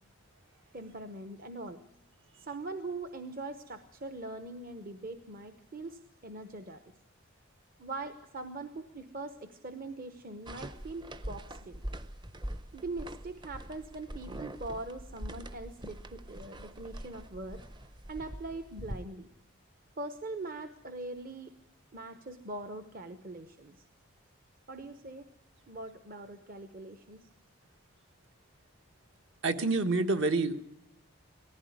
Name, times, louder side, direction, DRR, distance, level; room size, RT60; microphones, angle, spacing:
voice 1, 0.7-1.8 2.4-6.8 7.8-11.8 12.7-17.6 18.1-19.3 20.0-21.5 21.9-23.8 24.7-25.3 25.7-27.3, right 2 dB, 40° right, 8 dB, 1.0 m, -42 dB
sound 1, 10.5-19.0, right 1 dB, 20° right, 0.7 m, -43 dB
voice 2, 29.4-30.6, right 3 dB, 60° right, 8 dB, 1.5 m, -27 dB
18.5 x 15.0 x 9.5 m, 0.82 s
head